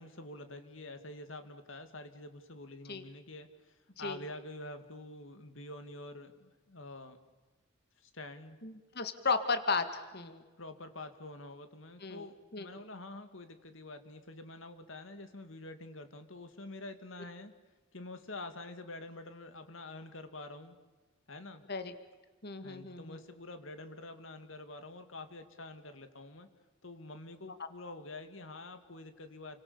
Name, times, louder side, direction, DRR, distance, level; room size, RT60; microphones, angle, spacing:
voice 1, 0.0-7.2 8.0-8.6 10.6-17.5 17.9-20.8 21.3-21.6 22.6-26.5 26.8-29.6, left 2 dB, 70° left, 8 dB, 2.6 m, -47 dB
voice 2, 8.6-10.4 12.0-12.3 12.5-12.7 21.7-21.9 22.4-23.2, left 4 dB, 50° left, 10 dB, 2.1 m, -34 dB
29.5 x 25.0 x 7.2 m, 1.2 s
head